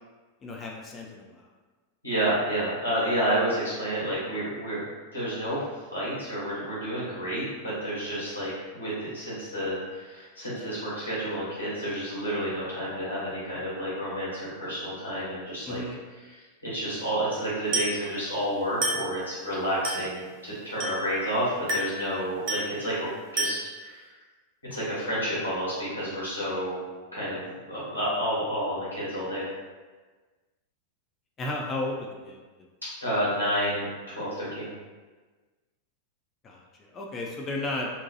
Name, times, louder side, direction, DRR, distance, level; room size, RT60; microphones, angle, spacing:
voice 1, 0.4-1.5 15.6-16.0 31.4-32.4 36.4-37.9, left 2 dB, 25° left, 0 dB, 0.4 m, -34 dB
voice 2, 2.0-4.8 5.1-5.6 5.9-15.8 16.3-16.4 16.7-24.1 24.7-26.8 27.1-29.4 33.0-34.7, equal, 85° left, -10 dB, 1.2 m, -30 dB
Glass, 17.7-18.1 18.8-19.2 19.8-20.2 20.8-21.1 21.7-22.0 22.5-22.8 23.4-23.8, right 1 dB, 45° right, 1.2 m, -30 dB
2.8 x 2.2 x 2.8 m, 1.3 s
figure-of-eight pair, 90°, 0 cm